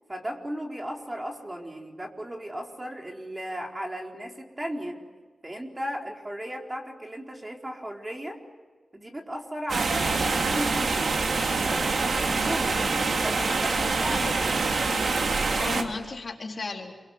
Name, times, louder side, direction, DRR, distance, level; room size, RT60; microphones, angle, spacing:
voice 1, 0.1-5.0 5.4-8.4 8.9-11.1 11.6-14.3, equal, 20° right, 1 dB, 4.3 m, -36 dB
sound 1, 9.7-15.8, right 3 dB, 75° right, 3.0 m, -25 dB
voice 2, 14.1-15.0 15.5-16.9, left 3 dB, 55° left, 1 dB, 4.0 m, -35 dB
29.0 x 24.0 x 8.1 m, 1.4 s
wide cardioid pair, 90°, 0 cm